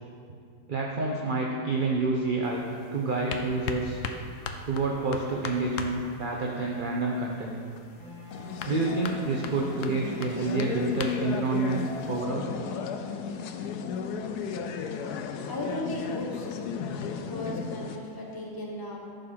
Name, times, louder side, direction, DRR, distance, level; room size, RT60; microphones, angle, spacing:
voice 1, 0.7-2.6 2.9-4.0 4.7-7.6 8.6-12.5, right 3 dB, 40° right, -1 dB, 0.8 m, -28 dB
sound 1, 2.4-12.2, left 5 dB, 60° left, 0.9 m, -41 dB
Wind instrument woodwind instrument, 8.0-14.9, left 2 dB, 15° right, 3.0 m, -46 dB
sound 2, 8.3-18.0, left 6 dB, 80° left, 1.2 m, -35 dB
voice 2, 15.5-16.6 17.3-19.0, left 1 dB, 15° left, -2 dB, 1.3 m, -35 dB
13.5 x 5.3 x 5.8 m, 2.3 s
omnidirectional pair, 1.7 m